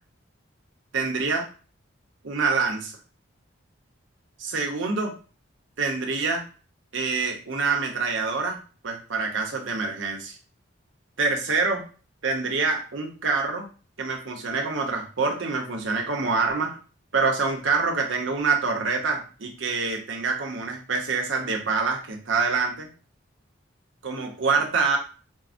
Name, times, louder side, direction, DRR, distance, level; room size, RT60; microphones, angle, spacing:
voice 1, 0.9-1.4 2.2-3.0 4.4-5.1 5.8-6.4 6.9-8.6 8.8-10.4 11.2-11.8 12.2-13.7 14.0-16.8 17.1-22.9 24.0-25.0, right 4 dB, 75° right, 1 dB, 0.8 m, -26 dB
4.5 x 2.0 x 2.5 m, 0.37 s
head